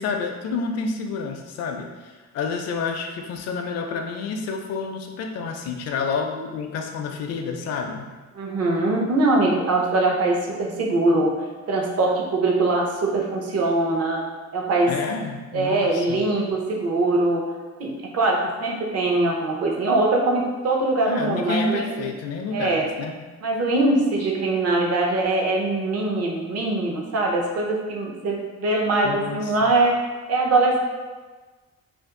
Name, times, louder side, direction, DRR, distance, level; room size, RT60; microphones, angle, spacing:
voice 1, 0.0-8.1 14.9-16.2 21.0-23.2 29.0-29.7, left 4 dB, 60° left, 3 dB, 0.5 m, -29 dB
voice 2, 8.3-11.3 11.7-14.2 14.5-14.9 15.5-17.4 17.8-22.1 22.5-22.9 23.4-30.0 30.3-30.8, right 2 dB, 55° right, -1 dB, 0.7 m, -22 dB
2.6 x 2.4 x 3.6 m, 1.3 s
cardioid pair, 115°, 30 cm